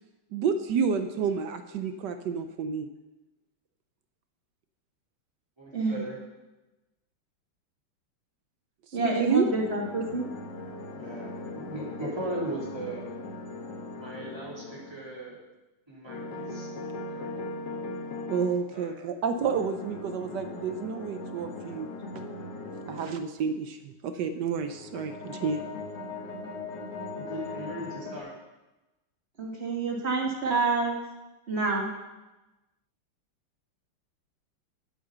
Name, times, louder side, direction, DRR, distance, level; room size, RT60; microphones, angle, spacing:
voice 1, 0.3-2.9 9.2-9.5 18.3-21.9 22.9-25.6, right 6 dB, 70° right, 8 dB, 1.0 m, -29 dB
voice 2, 5.6-6.2 10.9-13.0 14.0-15.4 15.9-16.7 17.1-17.5 18.7-18.9 27.2-28.3, right 1 dB, 10° right, -7 dB, 3.6 m, -38 dB
voice 3, 8.9-10.2 29.4-30.9 31.5-31.9, right 3 dB, 30° right, 0 dB, 1.7 m, -27 dB
sound 1, 9.1-15.2 16.1-18.6 19.4-23.2 24.5-28.2, left 2 dB, 55° left, 1.7 m, -39 dB
8.8 x 7.8 x 6.7 m, 1.1 s
omnidirectional pair, 2.4 m